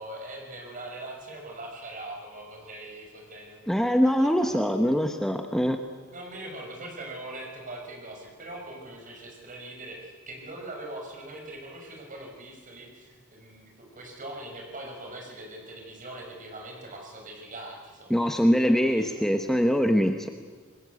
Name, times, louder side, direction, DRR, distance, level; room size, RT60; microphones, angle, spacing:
voice 1, 0.0-5.1 6.1-19.4, right 1 dB, 40° right, 1 dB, 6.0 m, -42 dB
voice 2, 3.7-5.8 18.1-20.3, equal, ahead, 5 dB, 1.1 m, -23 dB
27.5 x 21.0 x 8.4 m, 1.5 s
head